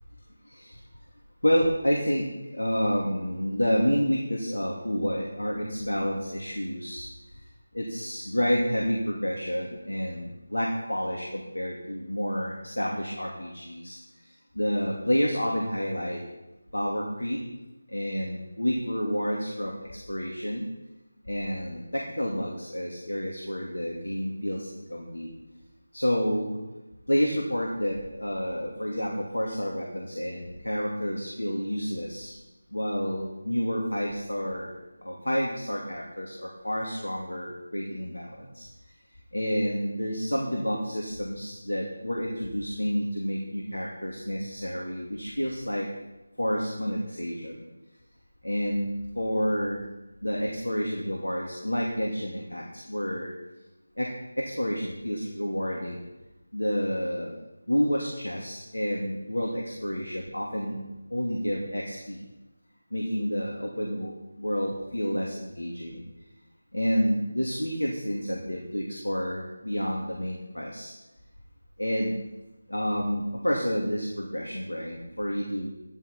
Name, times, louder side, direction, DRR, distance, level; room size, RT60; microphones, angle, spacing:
voice 1, 1.4-7.1 7.7-14.0 14.5-16.2 16.7-17.4 17.9-19.7 20.1-20.6 21.3-25.3 25.9-26.6 27.1-32.3 32.7-34.7 35.0-38.6 39.3-45.9 46.4-47.6 48.4-49.8 50.2-53.3 54.0-54.1 54.4-56.0 56.5-57.3 57.7-60.8 61.1-62.2 62.9-66.0 66.7-70.9 71.8-72.2 72.7-75.7, equal, 70° left, -1 dB, 2.4 m, -29 dB
14.5 x 12.5 x 4.3 m, 1.0 s
figure-of-eight pair, 160°, 0 cm